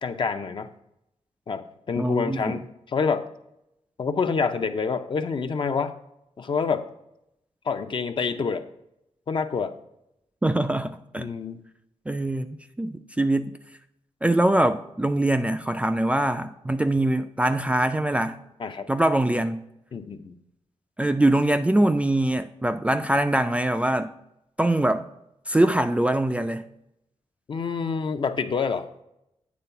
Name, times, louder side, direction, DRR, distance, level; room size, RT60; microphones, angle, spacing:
voice 1, 0.0-0.7 1.5-3.3 4.0-5.9 6.4-6.9 7.7-8.6 9.3-9.8 11.2-11.6 18.6-18.9 19.9-20.4 27.5-28.9, left 5 dB, 45° left, 0.6 m, -27 dB
voice 2, 2.0-2.6 10.4-11.3 12.1-13.5 14.2-18.4 18.9-19.6 21.0-24.1 24.6-25.0 25.5-26.6, right 1 dB, 10° right, 0.3 m, -23 dB
8.5 x 3.7 x 5.6 m
wide cardioid pair, 120°, 11 cm